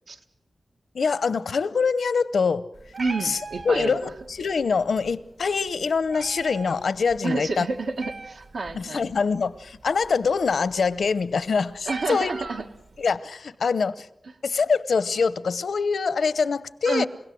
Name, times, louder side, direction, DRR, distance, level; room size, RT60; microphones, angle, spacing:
voice 1, 0.9-2.7 3.2-3.4 3.6-7.7 8.8-12.3 13.0-14.1 14.4-17.1, left 5 dB, 90° left, 0.8 m, -24 dB
Meow, 2.7-13.2, right 3 dB, 65° right, 2.1 m, -43 dB
voice 2, 3.0-4.0 7.2-9.1 11.9-12.6 16.9-17.1, right 3 dB, 85° right, 1.9 m, -29 dB
29.0 x 17.0 x 7.8 m
wide cardioid pair, 115°, 0 cm